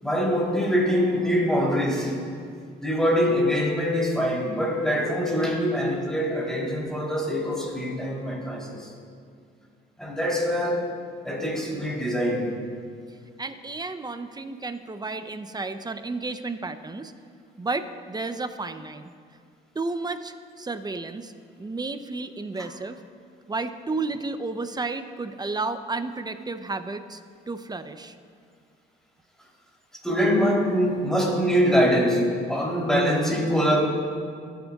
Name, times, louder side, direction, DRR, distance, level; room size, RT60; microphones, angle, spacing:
voice 1, 0.0-2.2 2.8-8.9 10.0-10.9 11.2-12.5 30.0-33.8, equal, 5° left, -3 dB, 3.3 m, -24 dB
voice 2, 13.4-17.1 17.6-19.1 19.7-21.3 21.6-23.0 23.5-27.2 27.5-28.2, right 3 dB, 20° right, 10 dB, 0.6 m, -32 dB
22.5 x 9.3 x 2.4 m, 2.2 s
cardioid pair, 90°, 20 cm